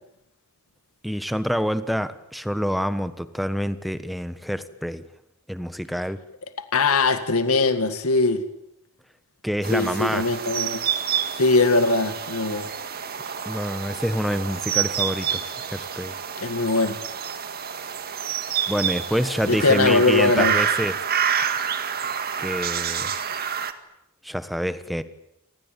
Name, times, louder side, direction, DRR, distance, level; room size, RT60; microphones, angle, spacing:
voice 1, 1.0-5.0 5.5-6.2 9.4-10.2 13.4-16.2 18.7-21.0 22.4-23.1 24.2-25.0, equal, ahead, 12 dB, 1.3 m, -27 dB
voice 2, 6.7-8.4 9.7-10.8 11.3-12.7 16.4-17.0 19.5-20.6, left 3 dB, 85° left, 9 dB, 1.9 m, -21 dB
sound 1, 9.6-23.7, right 8 dB, 45° right, 1.9 m, -28 dB
28.5 x 19.5 x 9.2 m, 0.81 s
head